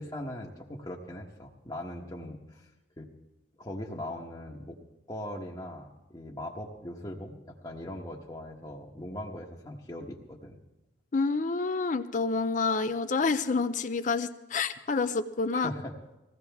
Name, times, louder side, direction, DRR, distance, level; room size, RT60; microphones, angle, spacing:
voice 1, 0.0-2.7 3.0-3.1 3.6-4.8 5.1-10.6 15.5-16.0, left 1 dB, 25° left, -3 dB, 1.2 m, -40 dB
voice 2, 11.1-15.7, left 4 dB, 45° left, 10 dB, 0.5 m, -28 dB
20.5 x 16.0 x 3.5 m, 1.0 s
head